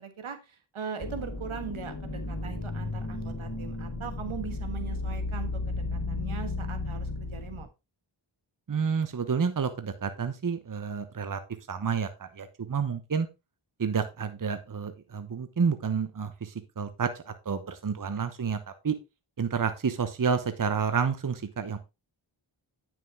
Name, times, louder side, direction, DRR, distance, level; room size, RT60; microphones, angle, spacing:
voice 1, 0.0-7.7, right 6 dB, 75° right, 8 dB, 1.5 m, -40 dB
sound 1, 1.0-7.6, left 2 dB, 45° left, 3.3 m, -34 dB
voice 2, 8.7-11.4 11.7-13.3 13.8-18.6 18.8-18.9 19.4-21.8, right 6 dB, 40° right, 10 dB, 1.0 m, -29 dB
9.2 x 6.2 x 3.5 m, 0.25 s
cardioid pair, 50°, 50 cm